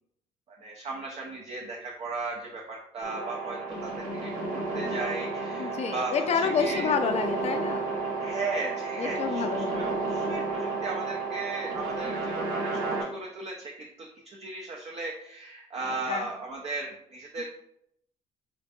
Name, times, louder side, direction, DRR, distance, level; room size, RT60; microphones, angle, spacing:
voice 1, 0.6-6.9 8.2-17.4, right 3 dB, 45° right, -2 dB, 0.6 m, -36 dB
sound 1, 3.0-13.0, right 3 dB, 75° right, 0.9 m, -32 dB
voice 2, 5.6-7.9 9.0-10.0 15.9-16.3, left 6 dB, 45° left, 7 dB, 0.4 m, -29 dB
3.8 x 2.6 x 2.3 m, 0.74 s
supercardioid pair, 70°, 15 cm